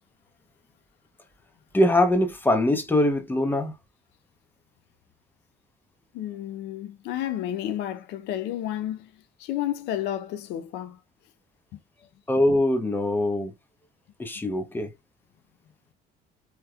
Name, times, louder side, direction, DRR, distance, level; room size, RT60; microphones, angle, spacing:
voice 1, 1.7-3.7 12.3-13.5 14.2-14.9, left 1 dB, 10° left, 0.8 m, -22 dB
voice 2, 6.1-9.1 9.4-11.0 11.7-11.8, left 12 dB, 85° left, 0.5 m, -31 dB
3.4 x 3.1 x 2.2 m
cardioid pair, 110°, 17 cm